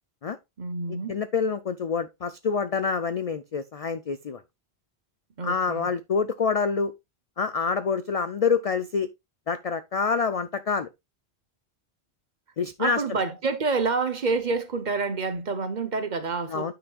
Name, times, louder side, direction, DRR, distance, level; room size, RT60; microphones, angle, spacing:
voice 1, 0.6-1.2 5.4-5.9 12.8-16.7, right 4 dB, 45° right, 0.9 m, -28 dB
voice 2, 1.1-4.4 5.4-6.9 7.4-9.1 9.5-10.9 12.6-13.0 16.5-16.7, left 5 dB, 60° left, 0.4 m, -26 dB
9.4 x 6.0 x 2.3 m
omnidirectional pair, 1.1 m